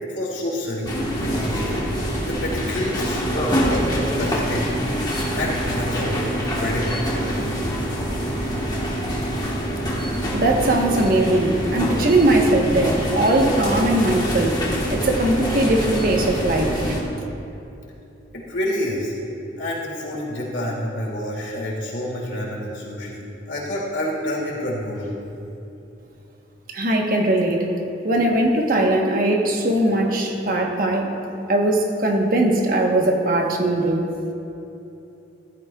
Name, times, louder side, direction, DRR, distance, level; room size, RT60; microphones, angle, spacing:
voice 1, 0.0-1.9 2.1-4.8 5.3-7.0 18.3-19.1 19.6-25.1, left 1 dB, 90° left, -3 dB, 2.5 m, -28 dB
sound 1, 0.8-17.0, equal, 20° left, 1.4 m, -25 dB
voice 2, 10.3-14.6 14.9-16.9 26.7-27.7 28.0-31.1 31.5-34.0, right 1 dB, 50° right, 1 dB, 1.2 m, -20 dB
15.0 x 12.5 x 2.4 m, 2.8 s
head